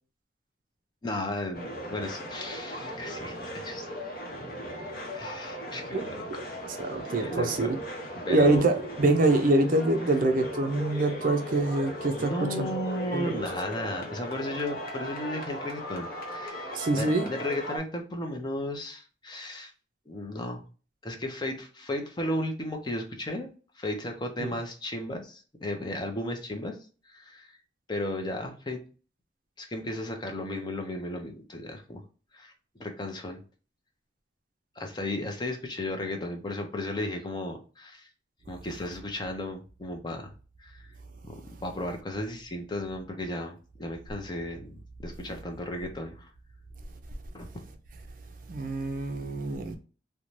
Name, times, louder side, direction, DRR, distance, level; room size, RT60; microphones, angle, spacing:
voice 1, 1.0-3.9 5.1-6.2 7.2-7.7 8.2-8.6 12.2-19.7 20.1-20.6 21.0-26.8 27.1-27.5 27.9-28.8 29.6-32.0 32.3-32.5 32.8-33.4 34.8-38.1 38.5-40.3 40.6-40.9 41.2-46.3 47.3-47.5, left 1 dB, 25° left, 3 dB, 0.5 m, -35 dB
sound 1, 1.5-17.8, equal, 55° left, 0.8 m, -38 dB
voice 2, 6.6-7.8 8.3-12.8 13.1-13.5 16.7-17.3 24.4-24.5 48.5-49.8, right 2 dB, 50° right, 6 dB, 0.4 m, -25 dB
2.6 x 2.1 x 3.0 m, 0.36 s
head